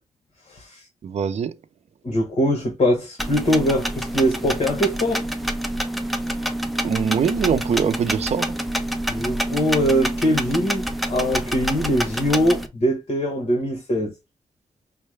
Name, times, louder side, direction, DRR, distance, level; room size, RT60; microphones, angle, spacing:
voice 1, 0.5-0.9 2.0-5.3 9.1-14.1, equal, 55° left, 1.3 m, -22 dB
voice 2, 1.0-1.5 6.8-8.6, right 7 dB, 60° right, 0.5 m, -23 dB
sound 1, 3.2-12.7, equal, ahead, 0.7 m, -27 dB
5.5 x 2.2 x 3.2 m
cardioid pair, 95°, 12 cm